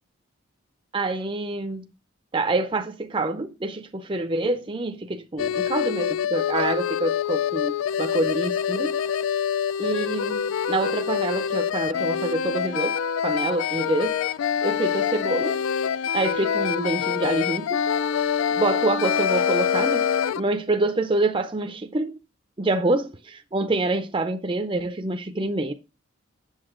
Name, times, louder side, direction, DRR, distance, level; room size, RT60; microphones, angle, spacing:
voice 1, 0.9-1.9 2.3-9.0 9.8-14.2 14.6-15.6 16.1-17.8 18.6-20.1 20.4-22.2 22.6-25.7, right 2 dB, 25° right, 0.5 m, -26 dB
sound 1, 5.4-20.4, left 8 dB, 70° left, 0.3 m, -25 dB
7.9 x 7.2 x 3.7 m
head